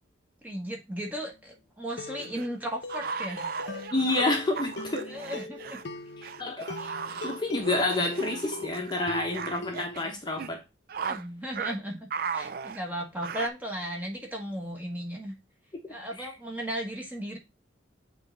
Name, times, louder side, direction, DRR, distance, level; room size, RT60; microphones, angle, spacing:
voice 1, 0.4-3.5 5.1-5.8 6.8-6.9 10.0-10.2 11.1-15.3 15.9-17.4, right 1 dB, 10° right, 1.2 m, -36 dB
sound 1, 1.1-1.4 2.0-10.0, left 3 dB, 65° left, 0.8 m, -42 dB
sound 2, 1.9-5.8 6.2-10.0 10.3-10.5 10.9-11.2 11.6-11.8 12.1-13.5, right 5 dB, 50° right, 0.4 m, -36 dB
voice 2, 3.9-5.1 6.2-6.7 7.2-10.6 16.2-16.3, left 2 dB, 20° left, 0.9 m, -29 dB
7.7 x 3.2 x 3.9 m
head